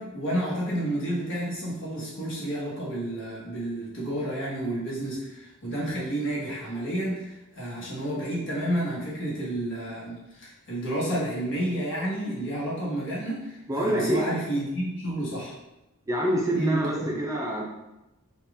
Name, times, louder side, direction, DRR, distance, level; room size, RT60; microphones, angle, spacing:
voice 1, 0.0-15.5 16.5-17.1, right 1 dB, 60° left, -6 dB, 1.4 m, -30 dB
voice 2, 13.7-14.2 16.1-17.6, right 1 dB, 15° right, -2 dB, 0.5 m, -26 dB
4.2 x 2.5 x 3.4 m, 0.95 s
head